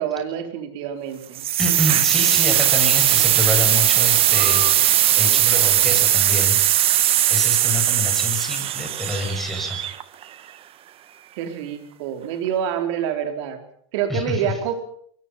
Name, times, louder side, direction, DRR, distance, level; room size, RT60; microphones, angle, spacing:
voice 1, 0.0-1.5 11.4-13.6 13.9-14.7, right 8 dB, 65° right, 6 dB, 4.4 m, -27 dB
sound 1, 1.4-10.2, right 12 dB, 35° right, 1.4 m, -19 dB
voice 2, 1.6-6.6 7.3-9.8 14.1-14.6, left 2 dB, ahead, 1 dB, 6.9 m, -27 dB
23.5 x 22.5 x 5.8 m, 0.63 s
supercardioid pair, 120°, 16 cm